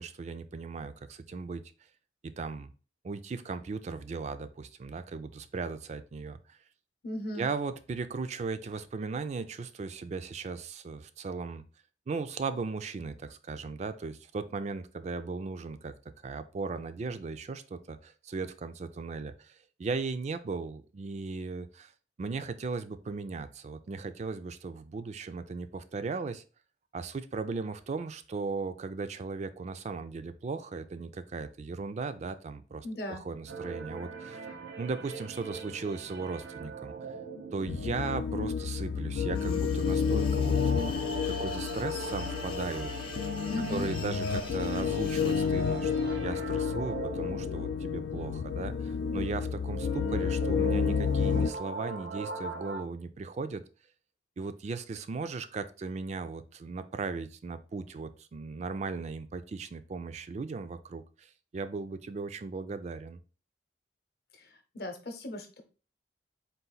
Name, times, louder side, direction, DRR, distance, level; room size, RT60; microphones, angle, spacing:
voice 1, 0.0-1.6 2.2-2.7 3.0-6.6 7.4-11.6 12.1-15.9 16.2-21.9 22.2-26.4 26.9-34.4 34.8-36.9 37.5-43.1 43.7-53.6 54.4-61.0 61.5-63.2, right 4 dB, 40° right, 11 dB, 0.3 m, -37 dB
voice 2, 7.0-7.5 32.8-33.2 43.5-43.9 64.4-64.5 64.7-65.6, left 1 dB, 60° left, 5 dB, 0.8 m, -36 dB
sound 1, 33.5-52.8, right 3 dB, 80° right, 0.9 m, -41 dB
sound 2, 37.7-51.5, left 6 dB, 80° left, 0.3 m, -30 dB
sound 3, 39.3-45.5, left 6 dB, 30° left, 0.6 m, -46 dB
3.9 x 2.4 x 3.9 m, 0.35 s
head